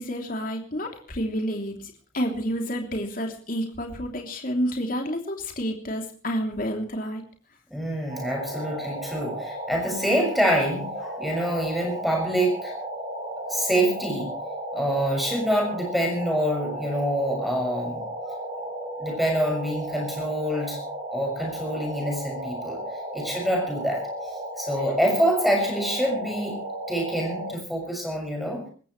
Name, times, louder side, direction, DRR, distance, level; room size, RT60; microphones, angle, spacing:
voice 1, 0.0-7.2, equal, 45° left, 2 dB, 3.1 m, -29 dB
voice 2, 7.7-12.7 13.5-14.3 14.7-18.0 19.0-20.8 21.1-22.8 23.1-24.0 24.6-26.6 26.9-28.6, equal, ahead, 1 dB, 6.5 m, -26 dB
sound 1, 8.1-27.5, right 1 dB, 30° right, 7.2 m, -34 dB
26.5 x 14.5 x 3.3 m, 0.41 s
head